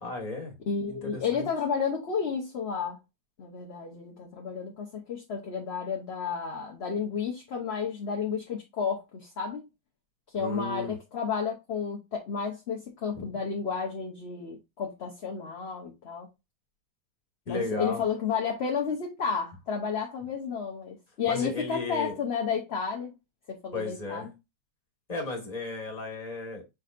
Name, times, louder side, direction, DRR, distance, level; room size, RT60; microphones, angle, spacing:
voice 1, 0.0-0.5 0.9-1.5 10.4-10.9 13.1-13.3 17.5-18.0 21.3-22.2 23.7-24.3 25.1-26.6, left 2 dB, 25° left, 1.4 m, -34 dB
voice 2, 0.7-3.0 3.4-9.7 10.3-16.3 17.5-23.1 23.5-24.3, left 6 dB, 45° left, 0.9 m, -32 dB
5.6 x 3.9 x 2.5 m
omnidirectional pair, 2.0 m